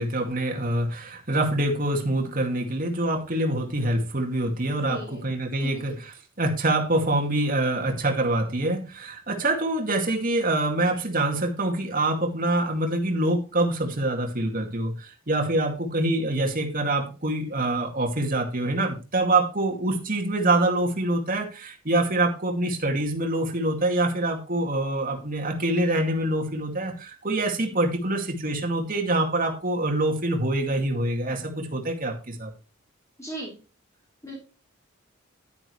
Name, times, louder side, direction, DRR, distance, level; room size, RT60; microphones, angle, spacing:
voice 1, 0.0-6.1 6.4-32.5, right 2 dB, 40° right, 2 dB, 2.3 m, -25 dB
voice 2, 4.7-5.3 5.6-5.9 33.2-33.6 34.2-34.3, right 1 dB, 15° left, -4 dB, 3.5 m, -36 dB
11.0 x 10.0 x 3.2 m, 0.32 s
head